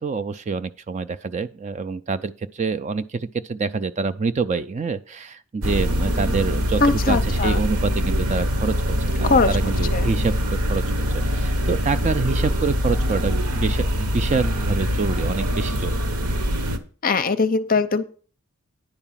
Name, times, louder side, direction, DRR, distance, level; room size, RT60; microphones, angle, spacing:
voice 1, 0.0-6.8 7.1-8.7 9.0-10.8 11.1-16.0, right 4 dB, 30° right, 13 dB, 0.4 m, -26 dB
sound 1, 5.6-16.8, equal, 90° right, 1.0 m, -23 dB
voice 2, 6.8-7.6 9.2-9.5 9.9-10.1 17.0-18.1, left 4 dB, 40° left, 11 dB, 0.6 m, -20 dB
9.8 x 4.8 x 7.3 m, 0.41 s
head